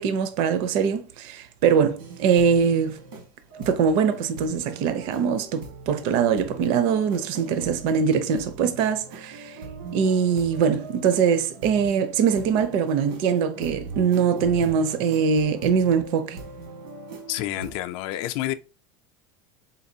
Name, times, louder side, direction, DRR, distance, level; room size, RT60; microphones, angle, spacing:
voice 1, 0.0-3.0 3.6-9.6 9.9-16.4, right 6 dB, 55° right, 0.5 m, -22 dB
sound 1, 2.0-17.7, right 3 dB, 80° right, 1.4 m, -40 dB
voice 2, 17.3-18.5, left 14 dB, 55° left, 0.4 m, -29 dB
3.9 x 3.8 x 2.7 m
cardioid pair, 165°, 11 cm